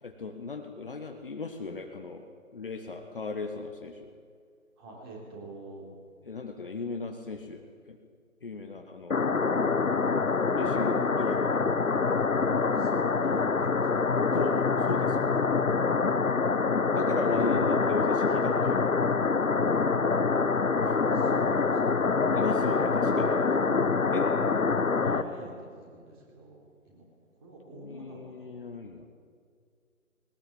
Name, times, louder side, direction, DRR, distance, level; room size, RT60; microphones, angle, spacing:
voice 1, 0.0-2.3 2.5-4.1 6.3-8.0 8.4-9.2 10.6-11.6 14.3-15.3 16.9-18.9 20.8-20.9 22.3-23.3 24.1-24.3 27.7-29.1, left 4 dB, 40° left, 5 dB, 1.4 m, -36 dB
voice 2, 4.8-5.9 12.6-14.2 17.2-17.7 20.9-23.7 24.9-27.1 27.4-28.6, right 2 dB, 15° right, -1 dB, 3.6 m, -47 dB
sound 1, 9.1-25.2, left 4 dB, 65° left, 1.2 m, -25 dB
20.0 x 19.0 x 8.7 m, 2.1 s
figure-of-eight pair, 155°, 43 cm